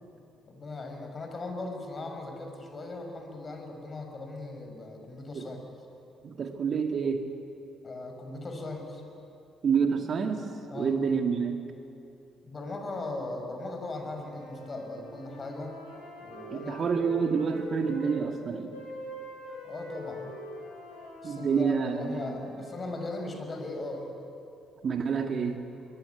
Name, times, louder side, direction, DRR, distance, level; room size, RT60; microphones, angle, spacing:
voice 1, 0.5-5.6 7.8-9.0 10.7-11.0 12.4-15.8 16.2-17.0 19.6-20.3 21.2-24.1, left 2 dB, 35° left, 4 dB, 6.0 m, -38 dB
voice 2, 6.2-7.3 9.6-11.6 16.5-18.7 21.2-22.4 24.8-25.6, right 6 dB, 50° right, 5 dB, 1.8 m, -28 dB
sound 1, 14.1-18.2 18.7-22.9, left 1 dB, 85° left, 6.8 m, -44 dB
23.5 x 21.0 x 9.6 m, 2.8 s
figure-of-eight pair, 45°, 0 cm